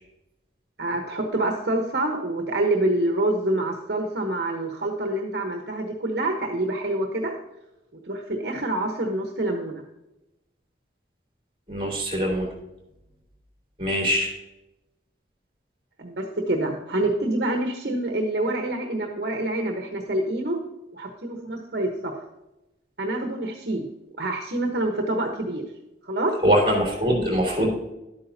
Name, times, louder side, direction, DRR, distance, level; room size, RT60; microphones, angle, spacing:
voice 1, 0.8-7.4 8.0-9.8 16.0-20.6 20.9-22.1 23.0-23.8 24.2-25.6 26.0-26.3, right 1 dB, 70° right, 2 dB, 1.1 m, -26 dB
voice 2, 11.7-12.5 13.8-14.3 26.4-27.7, equal, 30° right, -2 dB, 3.3 m, -22 dB
11.5 x 8.6 x 2.8 m, 0.93 s
head